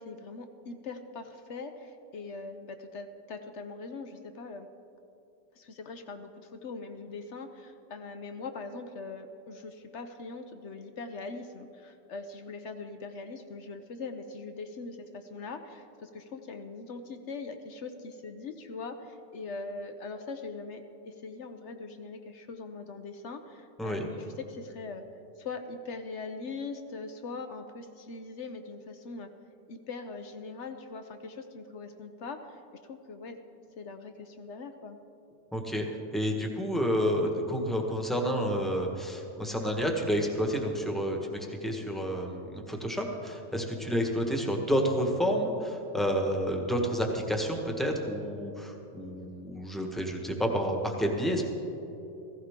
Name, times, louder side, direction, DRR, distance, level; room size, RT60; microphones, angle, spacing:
voice 1, 0.0-4.7 5.5-25.1 25.4-29.3 29.7-32.6 32.9-33.4 33.8-35.0 43.9-44.0, left 4 dB, 60° left, 7 dB, 0.8 m, -41 dB
voice 2, 35.5-35.8 36.1-51.5, equal, ahead, 1 dB, 1.2 m, -30 dB
16.0 x 15.5 x 3.7 m, 2.9 s
omnidirectional pair, 1.9 m